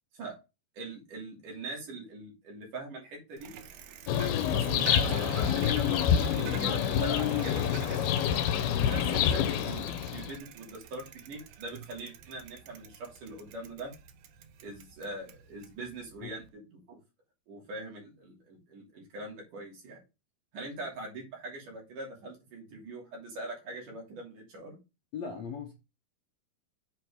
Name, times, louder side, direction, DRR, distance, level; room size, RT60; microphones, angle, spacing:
voice 1, 0.8-3.6 4.1-8.3 8.9-13.9 14.6-16.4 16.7-17.0 17.5-20.0 20.5-24.8, right 2 dB, 60° right, 4.3 m, -42 dB
Bicycle, 3.4-16.5, right 9 dB, 80° right, 1.7 m, -46 dB
sound 1, 4.1-10.4, left 9 dB, 85° left, 2.6 m, -27 dB
voice 2, 25.1-25.7, left 6 dB, 60° left, 1.9 m, -39 dB
7.9 x 4.5 x 4.9 m
omnidirectional pair, 4.4 m